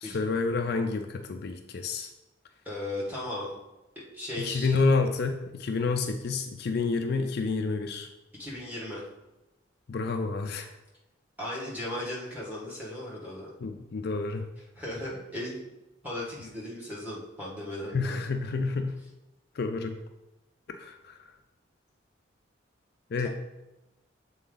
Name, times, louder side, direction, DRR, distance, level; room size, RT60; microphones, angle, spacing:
voice 1, 0.0-2.1 4.4-8.1 9.9-10.7 13.6-14.5 17.9-19.0 19.6-20.0 20.7-21.2 23.1-23.3, left 4 dB, 55° left, 5 dB, 0.4 m, -29 dB
voice 2, 2.7-3.5 4.0-4.8 8.4-9.1 11.4-13.5 14.8-15.6 16.0-18.2 23.2-23.3, left 1 dB, 10° right, -6 dB, 1.7 m, -36 dB
7.2 x 3.8 x 3.9 m, 0.99 s
head